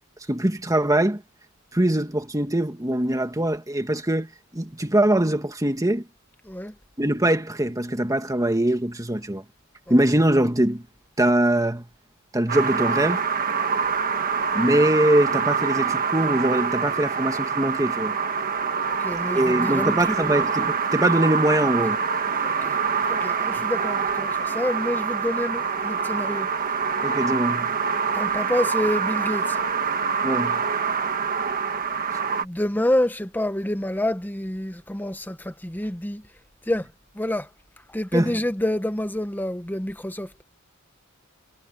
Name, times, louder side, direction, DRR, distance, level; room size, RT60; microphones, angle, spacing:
voice 1, 0.3-1.2 1.7-6.1 7.0-9.4 9.9-10.9 11.2-11.9 12.3-13.2 14.5-18.2 19.3-22.0 27.0-27.7 30.2-30.6 38.1-38.3, right 1 dB, 15° right, 2.0 m, -22 dB
sound 1, 12.5-32.4, right 6 dB, 40° right, 1.5 m, -25 dB
voice 2, 19.0-20.2 22.4-22.7 23.0-26.5 28.1-29.6 32.4-36.2 36.7-36.9 37.1-37.5 37.9-40.3, left 1 dB, 10° left, 1.1 m, -27 dB
head